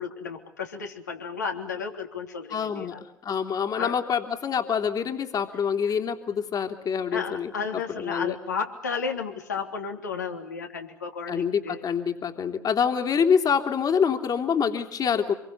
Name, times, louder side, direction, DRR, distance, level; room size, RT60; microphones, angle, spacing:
voice 1, 0.0-3.0 3.8-4.0 7.1-11.8, left 5 dB, 85° left, 2 dB, 3.2 m, -33 dB
voice 2, 2.5-2.9 3.2-8.3 11.3-15.3, left 7 dB, 45° left, 5 dB, 3.1 m, -26 dB
27.0 x 23.0 x 8.2 m, 0.76 s
figure-of-eight pair, 55°, 9 cm